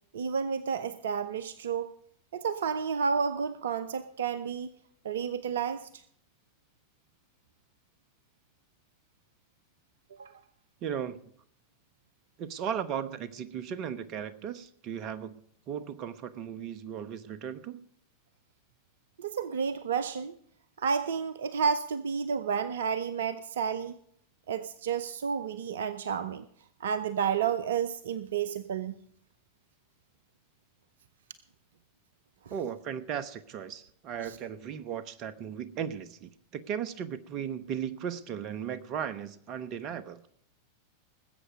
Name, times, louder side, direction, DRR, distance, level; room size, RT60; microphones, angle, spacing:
voice 1, 0.1-1.9 2.3-4.7 5.0-6.0 10.1-10.4 19.2-20.4 20.8-24.0 24.5-26.5 26.8-29.0 32.5-32.6 34.2-34.4, right 6 dB, 70° right, 14 dB, 0.6 m, -31 dB
voice 2, 10.8-11.2 12.4-15.4 15.7-17.8 32.5-40.2, right 8 dB, 45° right, 14 dB, 1.1 m, -36 dB
20.0 x 8.2 x 5.2 m, 0.66 s
figure-of-eight pair, 90°, 0 cm